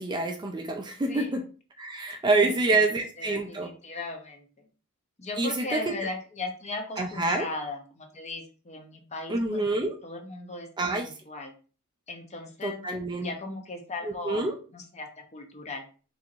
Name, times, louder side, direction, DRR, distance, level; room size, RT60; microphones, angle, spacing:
voice 1, 0.0-1.4 1.8-3.7 5.4-5.8 7.0-7.5 9.3-9.9 10.8-11.1 12.6-13.3 14.2-14.5, right 2 dB, 20° right, 4 dB, 0.4 m, -27 dB
voice 2, 2.3-2.8 3.2-4.7 5.2-9.6 10.0-11.5 12.1-12.8 13.2-15.9, left 3 dB, 30° left, 4 dB, 0.7 m, -38 dB
4.4 x 2.7 x 2.5 m, 0.37 s
head